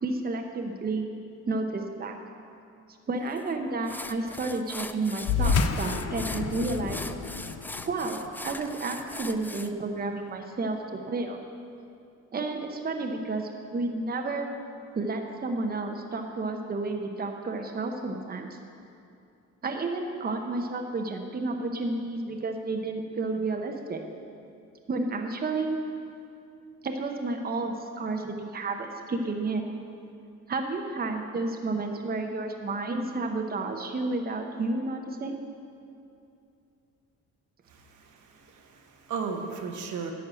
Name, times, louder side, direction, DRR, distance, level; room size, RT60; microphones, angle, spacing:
voice 1, 0.0-1.1 1.5-2.1 3.1-7.0 7.9-11.4 12.3-14.5 14.9-18.6 19.6-24.0 24.9-25.8 26.8-29.7 30.5-35.3, right 3 dB, 30° right, 3 dB, 0.9 m, -31 dB
sound 1, 3.4-3.5 3.9-9.7, left 2 dB, 5° left, 0.3 m, -40 dB
sound 2, 5.2-10.1, left 5 dB, 55° left, 0.6 m, -30 dB
voice 2, 37.7-40.1, right 5 dB, 75° right, 2 dB, 1.2 m, -36 dB
11.0 x 4.7 x 7.7 m, 2.6 s
cardioid pair, 90°, 30 cm